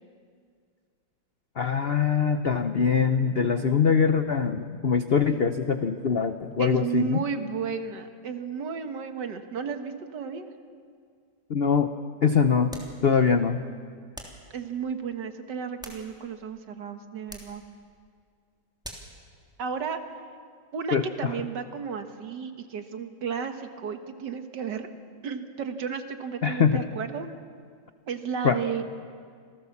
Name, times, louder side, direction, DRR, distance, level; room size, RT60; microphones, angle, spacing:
voice 1, 1.6-7.2 11.5-11.9 12.2-12.7 13.0-13.6 20.9-21.3 26.4-26.8 28.4-28.6, left 6 dB, 70° left, 9 dB, 0.5 m, -23 dB
voice 2, 5.1-5.5 6.6-10.5 14.5-17.6 19.6-20.0 20.7-24.9 25.2-27.3 28.1-28.8, right 6 dB, 65° right, 7 dB, 1.9 m, -33 dB
sound 1, 12.7-13.0 14.1-14.5 15.5-16.4 17.3-17.6 18.8-19.2, equal, ahead, 3.0 m, -43 dB
27.5 x 18.0 x 7.2 m, 2.1 s
omnidirectional pair, 2.1 m